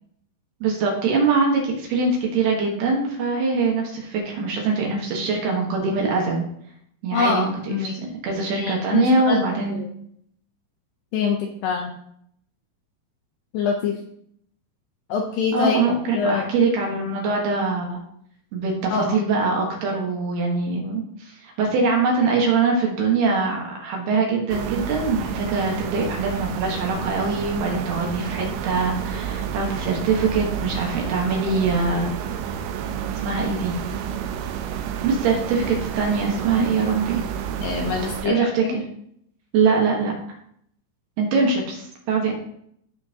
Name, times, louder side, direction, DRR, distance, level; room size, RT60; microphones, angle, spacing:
voice 1, 0.6-6.5 7.0-7.5 7.8-9.8 15.5-18.0 18.5-32.1 33.2-33.7 35.0-37.2 38.2-38.8 39.5-40.1 41.2-42.3, right 4 dB, 65° right, 0 dB, 3.0 m, -23 dB
voice 2, 7.1-8.0 8.6-9.9 11.1-11.9 13.5-14.0 15.1-16.5 18.9-19.2 36.6-36.7 37.6-38.8, left 5 dB, 80° left, 2 dB, 2.5 m, -25 dB
sound 1, 24.5-38.3, right 8 dB, 80° right, 3.1 m, -30 dB
15.0 x 5.6 x 2.9 m, 0.68 s
omnidirectional pair, 5.6 m